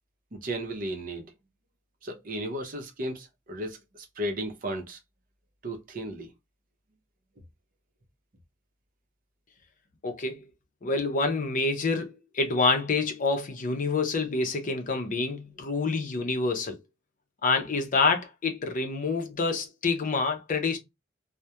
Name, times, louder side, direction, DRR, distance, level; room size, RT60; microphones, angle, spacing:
voice 1, 0.3-1.2 2.0-5.0 5.6-6.3, right 1 dB, 45° right, 0.6 m, -34 dB
voice 2, 10.0-10.5 10.8-16.8 17.4-20.8, left 3 dB, 45° left, 0.6 m, -27 dB
2.3 x 2.1 x 2.8 m
head